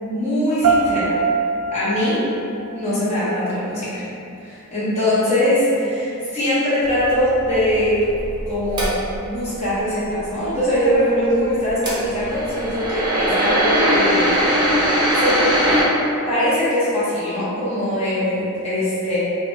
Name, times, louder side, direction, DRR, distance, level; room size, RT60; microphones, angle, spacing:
voice 1, 0.0-1.2 1.7-2.2 2.7-4.1 4.4-6.0 6.3-8.0 8.5-8.9 9.2-14.3 15.2-15.4 16.3-19.2, equal, 30° left, -11 dB, 0.8 m, -21 dB
sound 1, 0.6-3.6, right 4 dB, 75° right, 0.3 m, -23 dB
sound 2, 6.9-9.3 11.7-15.8, right 1 dB, 20° right, 0.5 m, -20 dB
2.8 x 2.1 x 2.9 m, 2.7 s
head